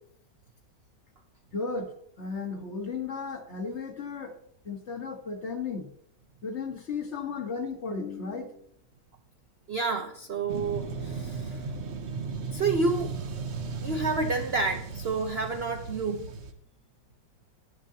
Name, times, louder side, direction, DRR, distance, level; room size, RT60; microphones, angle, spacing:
voice 1, 1.5-1.9 2.2-4.4 4.6-5.9 6.4-8.6, left 4 dB, 40° left, 4 dB, 1.3 m, -34 dB
voice 2, 9.7-11.6 12.5-13.1 13.8-16.3, right 3 dB, 85° right, 5 dB, 0.5 m, -29 dB
sound 1, 10.5-16.5, right 4 dB, 55° right, 0.8 m, -36 dB
10.5 x 10.0 x 2.8 m, 0.69 s
omnidirectional pair, 2.0 m